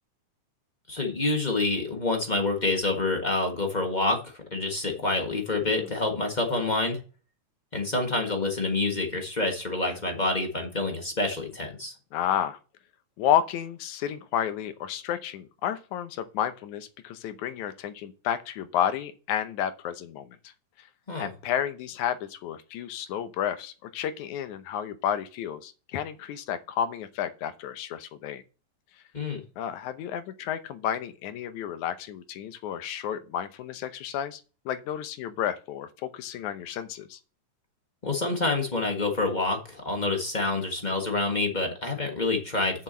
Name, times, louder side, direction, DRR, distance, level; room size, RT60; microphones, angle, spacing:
voice 1, 0.9-7.0 7.7-11.9 21.1-21.3 29.1-29.4 38.0-42.8, left 2 dB, 30° left, 0.8 m, -27 dB
voice 2, 12.1-12.6 13.2-20.5 21.2-28.4 29.6-37.2, left 10 dB, 85° left, 2.3 m, -31 dB
6.8 x 6.0 x 7.3 m
omnidirectional pair, 3.3 m